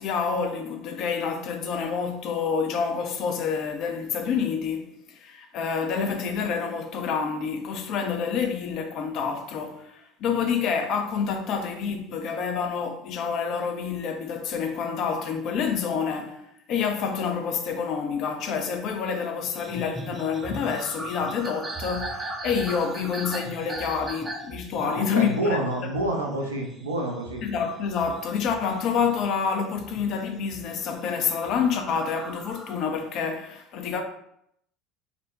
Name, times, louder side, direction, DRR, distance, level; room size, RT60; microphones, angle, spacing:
voice 1, 0.0-16.4 16.7-25.6 27.4-34.0, left 6 dB, 50° left, 0.5 m, -28 dB
sound 1, 19.4-29.3 29.8-30.8 31.3-32.7, right 2 dB, 25° right, 0.7 m, -38 dB
voice 2, 24.8-27.4, right 1 dB, 85° right, 0.5 m, -28 dB
3.7 x 2.1 x 3.5 m
figure-of-eight pair, 65°, 0 cm